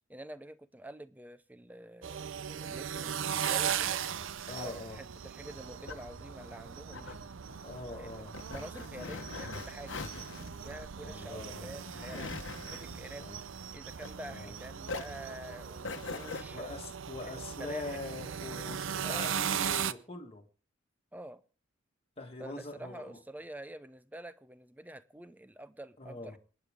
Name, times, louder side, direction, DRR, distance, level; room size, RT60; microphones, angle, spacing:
voice 1, 0.1-4.0 4.5-7.2 8.0-10.0 10.6-12.3 12.7-13.2 13.7-16.7 17.6-18.0 19.0-19.3 21.1-21.4 22.4-26.4, right 1 dB, 10° right, 0.7 m, -47 dB
sound 1, 2.0-19.9, right 8 dB, 80° right, 0.6 m, -38 dB
voice 2, 4.5-5.0 7.6-8.3 11.0-11.9 13.2-13.4 14.2-14.5 16.5-20.4 22.2-23.2 26.0-26.4, left 2 dB, 30° left, 1.7 m, -43 dB
sound 2, 5.4-14.5 14.8-16.4, left 4 dB, 65° left, 1.1 m, -43 dB
28.0 x 9.8 x 3.6 m
head